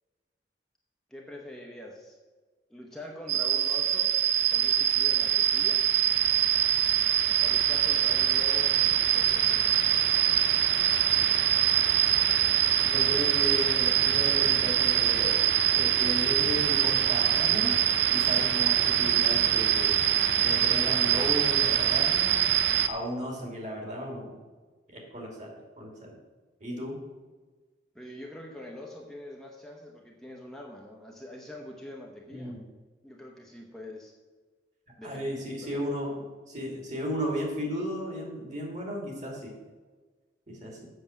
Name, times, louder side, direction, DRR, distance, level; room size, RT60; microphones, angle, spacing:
voice 1, 1.1-2.2 2.7-4.2 4.5-5.9 7.4-9.8 27.9-32.5 33.0-34.1 35.0-35.3 35.6-35.8, left 1 dB, 5° left, -1 dB, 0.9 m, -44 dB
sound 1, 3.3-22.9, right 11 dB, 70° right, 0.6 m, -24 dB
voice 2, 12.8-15.4 15.8-20.0 20.4-22.3 22.9-24.4 24.9-26.2 26.6-27.0 32.3-32.6 35.0-36.2 36.5-39.5 40.5-40.9, equal, 45° right, 0 dB, 2.7 m, -35 dB
7.9 x 6.3 x 7.2 m, 1.3 s
head